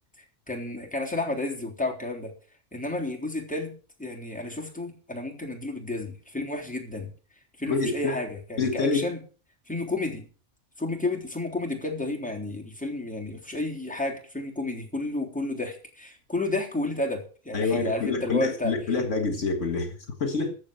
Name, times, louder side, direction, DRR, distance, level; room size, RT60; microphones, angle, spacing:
voice 1, 0.5-2.3 2.7-3.7 4.0-7.1 7.6-9.2 9.7-10.3 10.8-18.7, left 2 dB, 5° left, 3.5 m, -31 dB
voice 2, 7.7-8.2 8.6-9.1 17.5-20.5, left 4 dB, 65° left, 2.0 m, -27 dB
14.0 x 8.0 x 6.9 m
omnidirectional pair, 1.4 m